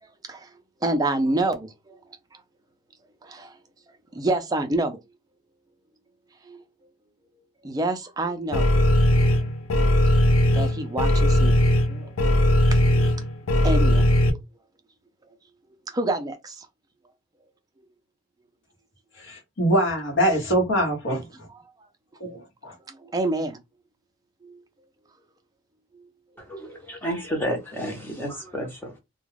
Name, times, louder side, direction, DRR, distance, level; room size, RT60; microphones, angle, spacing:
voice 1, 0.0-2.0 2.3-2.4 3.2-3.6 4.1-5.0 6.4-6.6 7.6-8.7 9.2-9.3 10.5-11.6 11.9-13.3 13.6-14.1 15.9-16.7 21.5-21.6 22.6-23.6 24.4-24.6 25.9-26.1 26.5-26.7, right 2 dB, 20° right, 0.4 m, -28 dB
sound 1, 8.5-14.3, left 1 dB, 80° left, 0.6 m, -19 dB
voice 2, 19.2-21.2 22.2-22.7, right 1 dB, 60° left, 1.0 m, -23 dB
voice 3, 26.4-29.0, equal, 10° left, 0.8 m, -31 dB
2.3 x 2.3 x 3.2 m
head